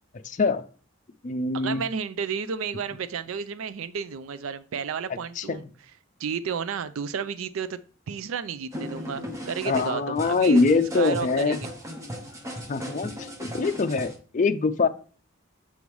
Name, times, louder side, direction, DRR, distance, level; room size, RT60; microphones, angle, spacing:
voice 1, 0.2-0.6 1.2-1.8 5.4-5.6 9.7-11.6 12.7-14.9, left 4 dB, 40° left, 0.5 m, -24 dB
voice 2, 1.5-5.6 6.2-7.8 8.1-10.6 10.9-11.7, right 6 dB, 90° right, 0.4 m, -32 dB
sound 1, 8.7-14.1, equal, 15° right, 1.0 m, -37 dB
7.1 x 5.3 x 3.1 m
head